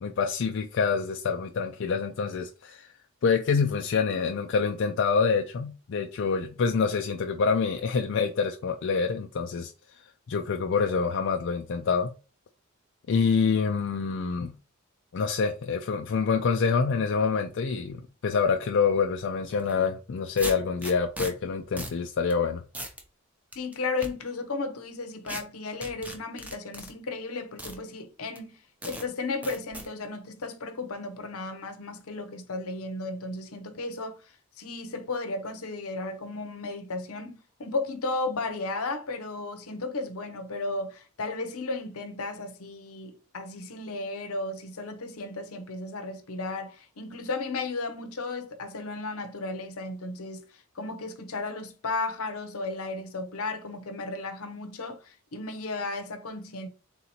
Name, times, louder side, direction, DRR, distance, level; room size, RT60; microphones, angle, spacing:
voice 1, 0.0-2.9 3.2-9.7 10.3-12.1 13.1-14.5 15.1-22.6, left 5 dB, 55° left, 0.4 m, -26 dB
sound 1, 19.6-19.7 20.4-21.3 21.8-22.0 22.3-22.4 22.7-23.0 23.5-24.1 25.3-25.4 25.8-26.9 27.6-27.8 28.3-28.4 28.8-29.0 29.4-29.9, right 1 dB, 5° right, 0.6 m, -37 dB
voice 2, 23.5-28.6 28.8-56.7, left 3 dB, 75° left, 0.7 m, -34 dB
3.8 x 2.8 x 4.2 m
head